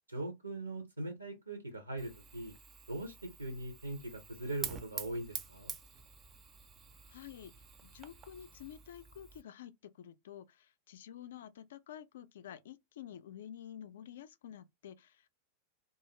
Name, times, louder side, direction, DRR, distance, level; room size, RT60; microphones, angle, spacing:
voice 1, 0.1-2.6 2.9-5.7, right 2 dB, 80° right, 0.6 m, -41 dB
Fire, 2.0-9.4, right 6 dB, 25° right, 0.4 m, -48 dB
voice 2, 7.1-7.5 7.8-15.3, left 10 dB, 60° left, 0.3 m, -50 dB
2.4 x 2.3 x 2.9 m
figure-of-eight pair, 90°, 0 cm